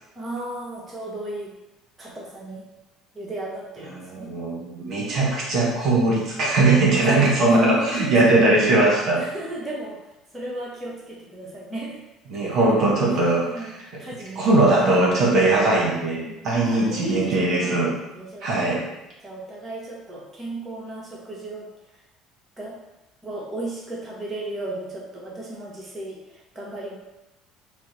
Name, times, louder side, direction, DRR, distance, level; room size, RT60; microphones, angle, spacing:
voice 1, 0.1-1.5 2.0-2.6 3.1-4.4 6.9-8.5 9.1-10.0 10.3-12.0 12.4-12.8 13.4-15.0 16.2-17.8 18.1-18.7 19.2-21.7 22.6-22.8 23.2-27.0, right 1 dB, 20° right, -4 dB, 1.2 m, -35 dB
voice 2, 4.0-9.2 12.3-13.7 14.4-16.2 16.4-17.9 18.4-18.8, right 2 dB, 55° right, -3 dB, 1.3 m, -20 dB
4.4 x 2.2 x 4.2 m, 0.97 s
hypercardioid pair, 65°, 0 cm